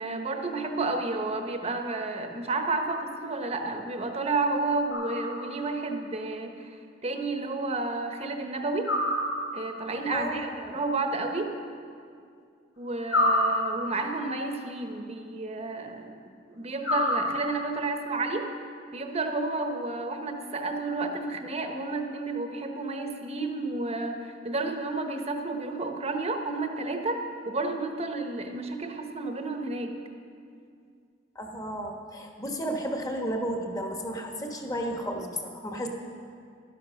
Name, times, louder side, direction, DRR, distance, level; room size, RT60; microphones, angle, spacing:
voice 1, 0.0-6.8 7.0-8.9 9.5-11.5 12.8-16.2 16.5-18.5 18.9-29.9, right 3 dB, 35° right, 5 dB, 1.0 m, -31 dB
sound 1, 4.9-5.7 8.8-9.9 13.1-14.2 16.8-17.8, left 1 dB, 80° left, 3.4 m, -28 dB
voice 2, 10.1-10.7 31.3-35.9, equal, 20° left, 2 dB, 1.3 m, -33 dB
12.0 x 10.5 x 6.3 m, 2.3 s
head